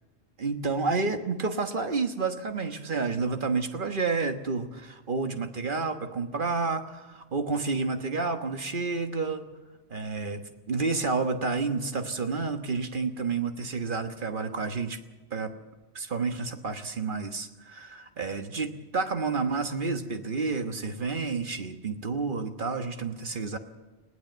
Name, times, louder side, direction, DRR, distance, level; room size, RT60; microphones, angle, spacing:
voice 1, 0.4-9.5 9.9-15.0 15.3-15.6 15.9-23.6, right 4 dB, 50° right, 7 dB, 1.5 m, -30 dB
20.0 x 16.0 x 8.0 m, 1.2 s
omnidirectional pair, 1.1 m